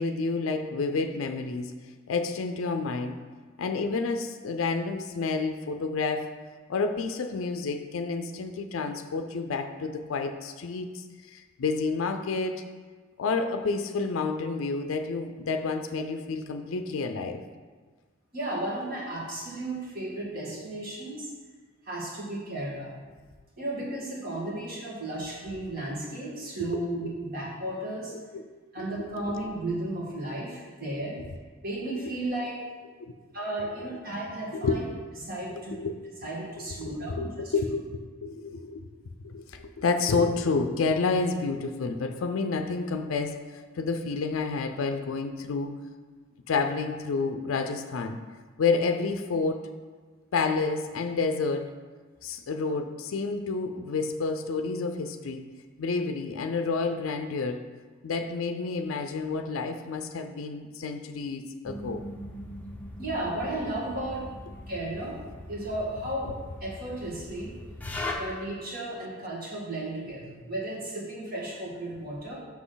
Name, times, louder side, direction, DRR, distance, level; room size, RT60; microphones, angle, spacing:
voice 1, 0.0-1.7 2.1-3.2 3.6-6.4 6.7-11.0 11.3-12.6 13.2-17.4 29.0-29.1 33.0-33.1 34.5-34.8 35.5-36.0 36.8-38.8 39.2-43.4 43.8-45.8 46.5-48.2 48.6-49.7 50.3-51.7 52.2-55.4 55.8-57.6 58.0-62.0 67.9-68.0, left 4 dB, 80° left, 7 dB, 0.4 m, -29 dB
voice 2, 18.3-21.3 21.8-22.9 23.6-28.1 28.7-31.2 31.6-32.6 33.3-34.8 35.2-35.8 36.2-37.5 63.0-64.3 64.7-65.2 65.5-66.4 66.6-67.5 68.1-72.4, right 1 dB, 50° right, -4 dB, 1.7 m, -34 dB
sound 1, 61.6-68.1, left 1 dB, 10° left, 0.6 m, -40 dB
6.1 x 5.9 x 3.9 m, 1.4 s
head